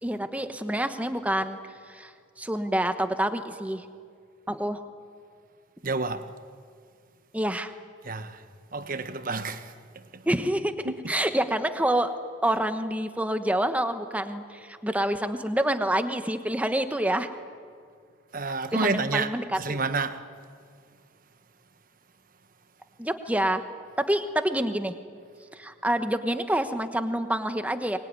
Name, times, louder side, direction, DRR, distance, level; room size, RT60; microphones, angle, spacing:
voice 1, 0.0-1.6 1.9-3.8 4.5-4.8 7.3-7.7 10.2-12.1 12.4-17.3 18.7-19.8 23.0-23.6 24.0-24.9 25.5-28.0, right 1 dB, 5° right, 1.1 m, -27 dB
voice 2, 5.8-6.3 8.0-8.4 8.7-10.2 10.8-11.1 18.3-20.2, right 3 dB, 45° right, 1.2 m, -30 dB
23.5 x 21.5 x 9.7 m
head